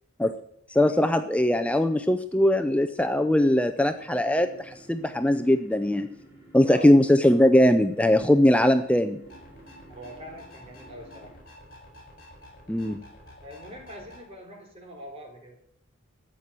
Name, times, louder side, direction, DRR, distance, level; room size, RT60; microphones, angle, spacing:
voice 1, 0.7-6.1 6.5-9.2 12.7-13.0, left 1 dB, 5° left, 9 dB, 0.5 m, -21 dB
sound 1, 3.8-11.4, right 2 dB, 15° right, 4.9 m, -52 dB
sound 2, 9.2-14.2, left 1 dB, 45° left, 7.1 m, -50 dB
voice 2, 9.9-11.3 13.4-15.6, equal, 30° right, 1 dB, 3.4 m, -43 dB
13.5 x 8.9 x 6.8 m, 0.74 s
head